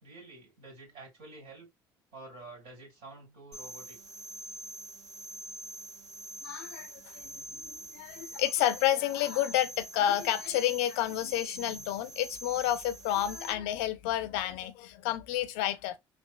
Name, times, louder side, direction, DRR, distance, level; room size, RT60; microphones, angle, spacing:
voice 1, 0.0-1.7 2.1-4.0, right 3 dB, 65° right, 2.2 m, -49 dB
sound 1, 3.5-13.5, right 2 dB, 80° right, 1.2 m, -45 dB
voice 2, 6.4-16.0, left 12 dB, 80° left, 0.4 m, -30 dB
3.3 x 2.5 x 2.3 m
hypercardioid pair, 55°, 11 cm